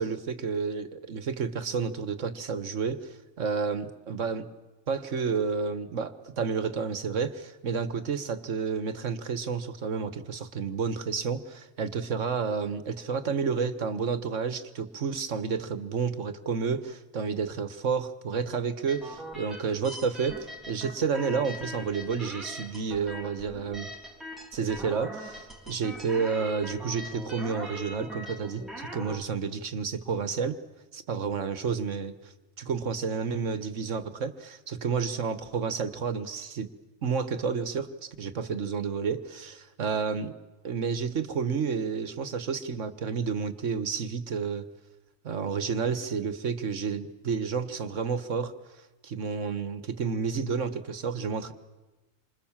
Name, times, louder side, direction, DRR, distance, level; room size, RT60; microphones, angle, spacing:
voice 1, 0.0-4.5 4.9-23.9 24.5-30.6 30.9-32.1 32.6-36.7 37.0-40.4 40.6-44.6 45.2-48.5 49.0-51.5, right 5 dB, 70° right, 12 dB, 1.7 m, -30 dB
sound 1, 18.9-29.2, equal, ahead, 3.5 m, -41 dB
28.5 x 25.5 x 7.4 m, 1.2 s
omnidirectional pair, 1.3 m